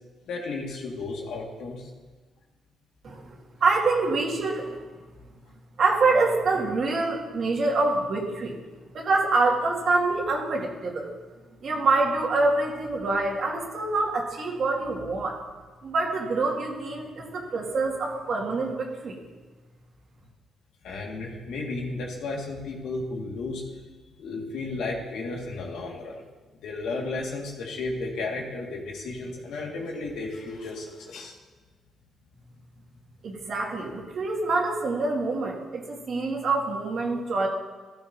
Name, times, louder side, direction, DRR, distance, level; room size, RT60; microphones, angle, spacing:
voice 1, 0.3-1.9 20.8-23.6 24.2-26.2 26.6-31.4, left 3 dB, 80° left, -1 dB, 2.2 m, -33 dB
voice 2, 3.0-3.3 3.6-4.8 5.8-8.6 8.9-11.1 11.6-15.4 15.8-19.2 33.2-37.5, right 3 dB, 55° right, -1 dB, 2.3 m, -26 dB
13.5 x 13.0 x 2.9 m, 1.3 s
cardioid pair, 90°, 0 cm